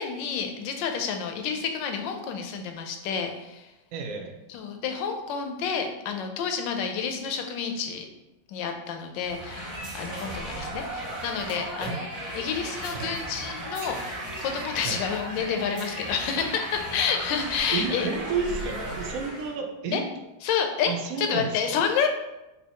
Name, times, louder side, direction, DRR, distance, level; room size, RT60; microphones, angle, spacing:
voice 1, 0.0-3.7 4.5-8.0 8.5-12.1 12.3-14.0 14.4-18.1 19.9-20.0 20.4-20.9 21.2-22.1, left 6 dB, 75° left, 5 dB, 1.2 m, -29 dB
voice 2, 3.9-4.4 11.8-12.0 12.9-13.2 13.8-14.0 14.8-15.0 17.7-20.0 20.8-21.8, right 5 dB, 80° right, 3 dB, 0.7 m, -31 dB
sound 1, 9.2-19.6, right 1 dB, 50° right, 1.6 m, -36 dB
5.5 x 2.6 x 2.9 m, 0.98 s
omnidirectional pair, 2.2 m